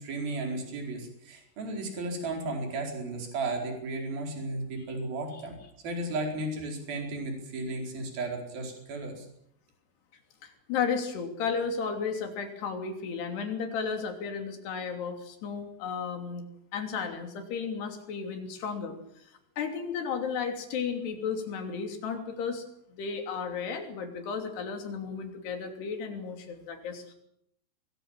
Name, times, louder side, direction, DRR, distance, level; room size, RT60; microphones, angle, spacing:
voice 1, 0.0-5.5 5.8-9.3, right 2 dB, 60° right, 2 dB, 6.4 m, -34 dB
voice 2, 10.4-16.4 16.7-22.6 22.9-27.1, left 6 dB, 70° left, 5 dB, 5.0 m, -34 dB
23.0 x 22.0 x 7.5 m, 0.74 s
omnidirectional pair, 4.9 m